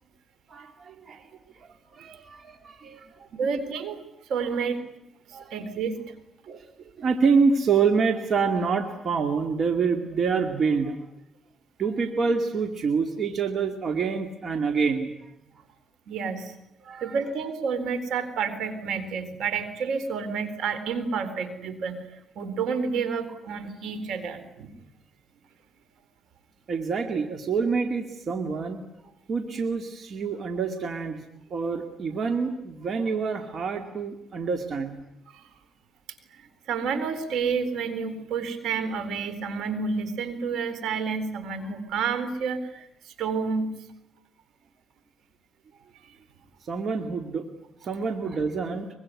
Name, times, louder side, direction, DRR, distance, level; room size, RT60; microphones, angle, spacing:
voice 1, 0.5-1.3 1.6-3.3 5.3-5.6 6.5-6.7 7.0-11.0 11.8-15.3 16.8-17.1 26.7-31.2 31.5-35.0 46.6-47.4 47.8-48.9, right 5 dB, 55° right, 6 dB, 2.3 m, -27 dB
voice 2, 3.3-4.0 4.3-4.8 5.3-6.1 16.1-16.6 17.0-24.7 35.3-35.5 36.3-43.7 46.0-46.1, right 5 dB, 80° right, 12 dB, 4.1 m, -30 dB
24.0 x 23.0 x 9.7 m, 0.85 s
cardioid pair, 90°, 0 cm